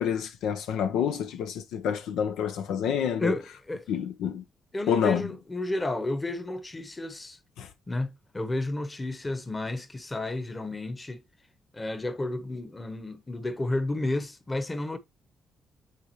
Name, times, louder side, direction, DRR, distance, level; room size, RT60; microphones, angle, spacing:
voice 1, 0.0-3.4 3.9-4.4 4.9-5.2 7.6-7.7, left 8 dB, 85° left, 0.8 m, -28 dB
voice 2, 4.7-7.4 7.9-11.2 11.7-15.0, left 2 dB, 20° left, 1.1 m, -31 dB
8.7 x 3.7 x 3.0 m
cardioid pair, 90°, 0 cm